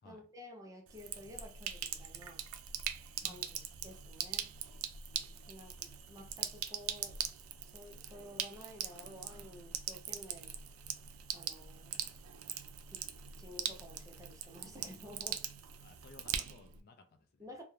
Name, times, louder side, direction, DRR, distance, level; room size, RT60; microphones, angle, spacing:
voice 1, 0.0-2.4 3.2-4.5 5.5-7.2 7.6-10.5 11.3-12.1 12.9-13.0 13.4-15.4 17.4-17.6, left 1 dB, 15° right, 0.5 m, -52 dB
Sink (filling or washing), 0.9-16.8, right 9 dB, 75° right, 0.3 m, -42 dB
voice 2, 3.2-3.6 15.8-17.5, left 3 dB, 45° left, 0.4 m, -59 dB
2.4 x 2.1 x 3.1 m
head